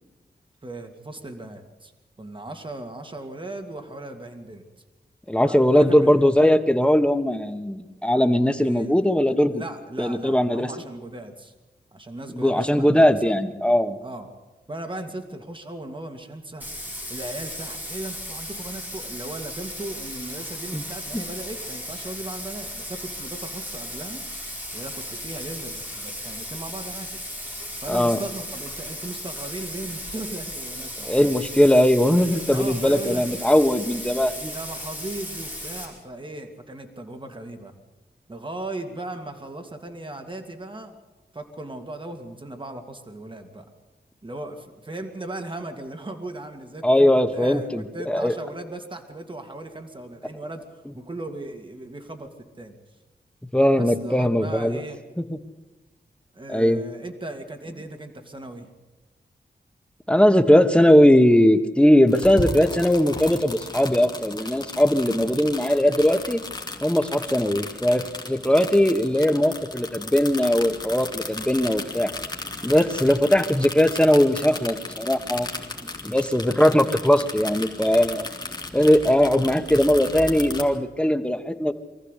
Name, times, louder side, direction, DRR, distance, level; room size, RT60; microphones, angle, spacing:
voice 1, 0.6-1.9 2.2-4.6 5.4-6.3 8.6-9.2 9.5-11.5 11.9-13.2 14.0-14.3 14.7-16.7 17.1-24.2 24.7-27.2 27.8-31.3 32.0-32.2 32.5-33.3 34.1-37.8 38.3-41.0 41.3-43.6 44.2-50.6 51.0-52.3 52.6-52.8 53.8-55.0 56.3-58.7 65.1-65.3 75.5-76.1, right 2 dB, 30° right, 5 dB, 2.3 m, -37 dB
voice 2, 5.3-9.6 10.0-10.7 12.3-14.0 20.7-20.8 21.1-21.2 27.9-28.2 31.0-34.5 46.8-48.3 53.5-54.8 56.5-56.8 60.1-66.4 66.8-68.0 68.3-72.1 72.6-75.5 76.0-78.3 78.7-81.7, equal, 5° left, 8 dB, 1.4 m, -19 dB
Bathtub (filling or washing), 16.6-35.9, equal, 10° right, 6.0 m, -36 dB
sound 1, 62.1-80.6, left 2 dB, 25° left, 2.5 m, -35 dB
24.0 x 14.5 x 8.3 m, 1.1 s
wide cardioid pair, 95°, 17 cm